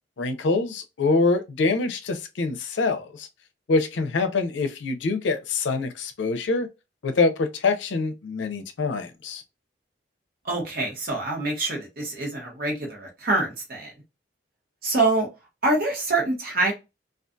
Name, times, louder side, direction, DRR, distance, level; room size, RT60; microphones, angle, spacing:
voice 1, 0.2-3.3 3.7-6.7 7.0-9.4, left 3 dB, 75° left, 0.5 m, -25 dB
voice 2, 10.4-13.9 14.8-15.3 15.6-16.7, right 2 dB, 55° right, 1.0 m, -25 dB
2.4 x 2.3 x 2.5 m
head